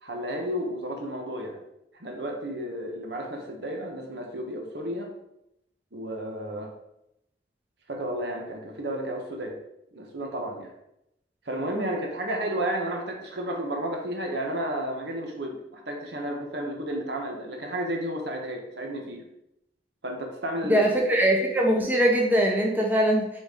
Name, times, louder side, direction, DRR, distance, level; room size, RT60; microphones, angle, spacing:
voice 1, 0.0-1.6 1.9-5.1 5.9-6.7 7.9-9.6 9.9-10.7 11.4-19.2 20.0-20.9, right 1 dB, 75° right, 2 dB, 1.1 m, -32 dB
voice 2, 20.6-23.4, right 1 dB, 10° right, 0 dB, 0.7 m, -22 dB
6.7 x 4.2 x 3.8 m, 0.83 s
head